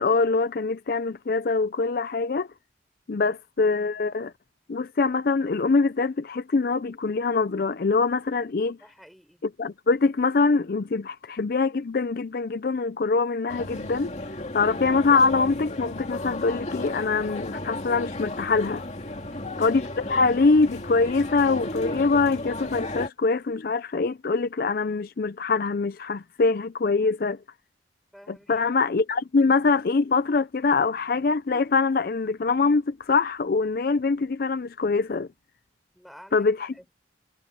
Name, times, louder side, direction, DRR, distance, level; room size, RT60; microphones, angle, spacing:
voice 1, 0.0-2.5 3.1-4.3 4.7-8.8 9.6-14.1 14.5-18.8 19.6-27.4 28.3-35.3 36.3-36.9, left 4 dB, 55° left, 0.5 m, -24 dB
voice 2, 8.8-9.4 19.2-19.5 28.1-28.7 35.9-36.9, equal, ahead, 5.9 m, -51 dB
sound 1, 13.5-23.1, left 2 dB, 40° left, 2.5 m, -34 dB
head